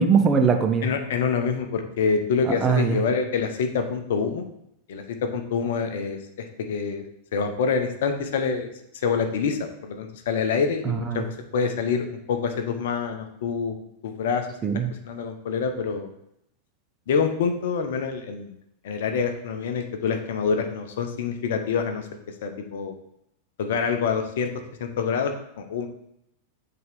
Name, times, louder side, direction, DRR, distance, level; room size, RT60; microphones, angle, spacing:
voice 1, 0.0-0.9 2.4-3.0 10.8-11.2 14.6-14.9, right 6 dB, 25° right, 5 dB, 0.7 m, -21 dB
voice 2, 0.8-4.5 4.9-7.0 7.3-8.7 9.0-13.8 14.0-14.5 15.0-16.1 17.1-18.5 18.8-22.1 22.4-22.9 23.6-24.5 24.8-25.9, left 5 dB, 55° left, 6 dB, 0.7 m, -26 dB
7.9 x 3.8 x 3.5 m, 0.78 s
figure-of-eight pair, 90°, 0 cm